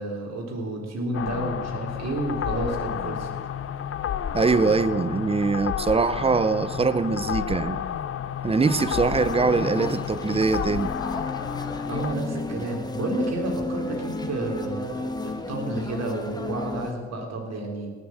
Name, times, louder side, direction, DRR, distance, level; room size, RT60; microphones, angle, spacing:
voice 1, 0.0-3.3 11.9-17.9, right 2 dB, 60° right, 3.7 m, -30 dB
sound 1, 1.1-12.1, left 9 dB, 45° left, 0.6 m, -31 dB
sound 2, 1.9-9.9, left 5 dB, 85° left, 1.7 m, -48 dB
voice 2, 4.3-7.8 8.4-10.9, right 4 dB, 20° right, 0.6 m, -23 dB
sound 3, 8.6-16.9, left 2 dB, 15° left, 1.4 m, -33 dB
18.5 x 7.1 x 7.4 m
cardioid pair, 90°, 30 cm